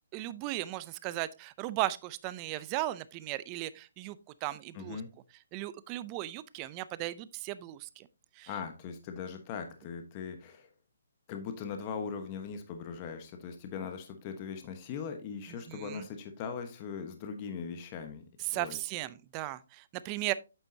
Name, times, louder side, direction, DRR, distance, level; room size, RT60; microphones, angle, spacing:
voice 1, 0.1-5.0 5.5-8.1 8.4-8.5 15.7-16.1 18.5-20.3, right 16 dB, 25° right, 0.5 m, -36 dB
voice 2, 4.7-5.1 8.5-10.7 11.3-18.8, left 6 dB, 25° left, 1.1 m, -40 dB
8.9 x 7.4 x 2.7 m
hypercardioid pair, 160°, 0 cm